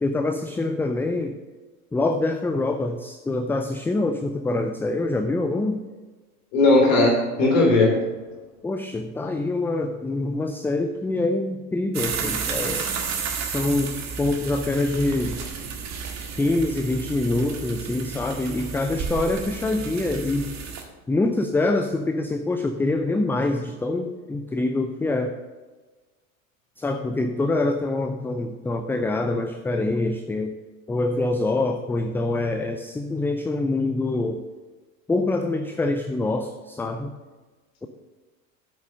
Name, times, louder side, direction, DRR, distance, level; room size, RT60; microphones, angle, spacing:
voice 1, 0.0-1.4 1.9-5.8 8.6-12.9 13.4-15.4 16.3-20.5 21.1-25.4 26.8-30.6 30.9-34.4 35.1-37.1 37.8-37.9, left 2 dB, 5° left, 6 dB, 0.4 m, -25 dB
voice 2, 6.5-7.9, left 2 dB, 65° left, -2 dB, 3.0 m, -17 dB
sound 1, 11.9-20.8, right 6 dB, 40° right, 1.7 m, -32 dB
9.0 x 6.2 x 6.5 m, 1.3 s
figure-of-eight pair, 75°, 41 cm